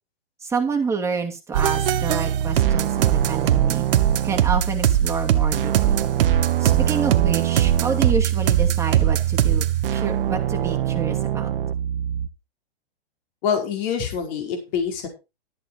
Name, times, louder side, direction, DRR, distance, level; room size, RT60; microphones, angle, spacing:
voice 1, 0.4-3.9 4.2-6.0 6.6-11.5, right 5 dB, 10° right, 1 dB, 2.5 m, -28 dB
sound 1, 1.5-12.3, right 11 dB, 60° right, 1.4 m, -21 dB
voice 2, 13.4-15.1, left 7 dB, 45° left, 4 dB, 4.9 m, -25 dB
13.0 x 8.9 x 4.5 m, 0.28 s
hypercardioid pair, 130°, 31 cm